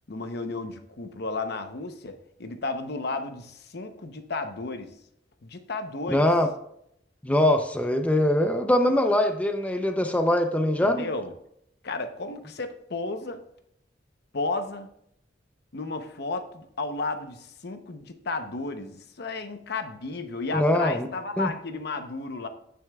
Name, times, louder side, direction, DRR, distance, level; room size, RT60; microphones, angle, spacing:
voice 1, 0.1-4.9 5.4-6.2 10.8-11.3 11.8-13.4 14.3-14.9 15.7-22.5, left 3 dB, 60° left, 8 dB, 0.8 m, -33 dB
voice 2, 6.1-6.5 7.2-11.1 20.5-21.1 21.4-21.5, left 1 dB, 10° left, 5 dB, 0.6 m, -22 dB
15.5 x 6.5 x 2.3 m, 0.73 s
head